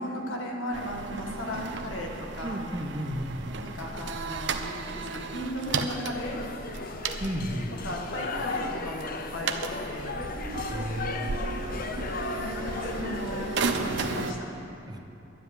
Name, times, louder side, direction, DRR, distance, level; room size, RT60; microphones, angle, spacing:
voice 1, 0.0-2.6 3.6-6.4 7.8-10.2 12.4-14.7, left 1 dB, 85° left, 0 dB, 1.8 m, -36 dB
sound 1, 0.7-14.3, right 4 dB, 60° right, 0.8 m, -35 dB
voice 2, 2.4-3.7 7.2-7.8 10.7-11.1 14.9-15.0, equal, 20° right, 4 dB, 0.8 m, -33 dB
sound 2, 5.9-14.4, left 3 dB, 45° left, 0.7 m, -36 dB
12.0 x 7.6 x 9.6 m, 2.9 s
head